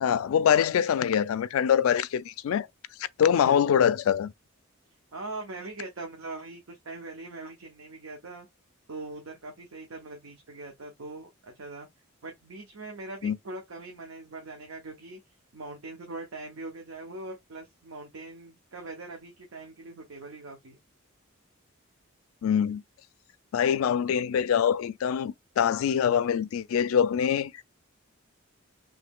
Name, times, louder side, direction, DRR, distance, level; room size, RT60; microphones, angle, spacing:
voice 1, 0.0-2.7 3.2-4.3 13.2-13.4 22.4-22.8 23.5-27.6, left 8 dB, 80° left, 0.3 m, -24 dB
voice 2, 5.1-8.5 8.9-11.9 12.2-15.2 15.5-20.8, right 2 dB, 80° right, 0.8 m, -41 dB
3.1 x 2.2 x 3.5 m
head